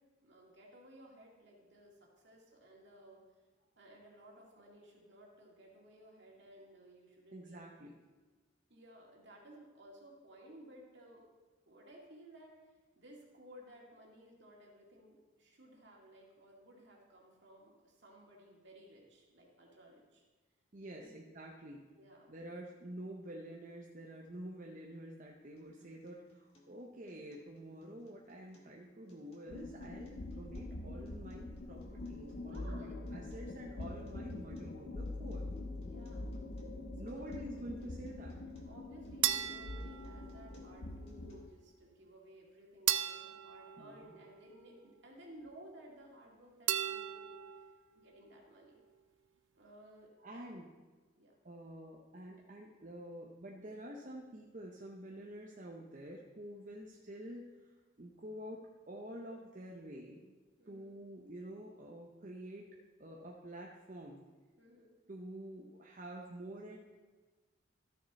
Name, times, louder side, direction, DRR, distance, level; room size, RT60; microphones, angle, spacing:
voice 1, 0.2-3.2 3.8-7.6 8.7-11.2 11.7-12.6 13.0-20.2 20.8-21.2 21.9-22.3 32.4-32.9 35.9-36.3 37.0-37.5 38.7-47.4 47.9-48.8 49.6-50.6 51.2-51.3 56.7-57.0 60.6-61.0 64.6-64.9, right 1 dB, 60° right, -2 dB, 2.2 m, -57 dB
voice 2, 7.3-7.9 20.7-21.8 22.3-35.5 37.0-38.4 43.8-44.1 50.2-50.7 51.4-60.3 60.7-62.7 63.0-64.2 65.1-66.8, right 1 dB, 40° right, -1 dB, 0.7 m, -48 dB
Acoustic guitar, 25.6-41.6, left 1 dB, 30° left, 1.8 m, -64 dB
sound 1, 29.5-41.5, left 2 dB, 60° left, 0.7 m, -44 dB
sound 2, 39.2-40.7 42.9-44.7 46.7-47.8, right 12 dB, 80° right, 0.4 m, -37 dB
13.5 x 6.4 x 4.1 m, 1.3 s
head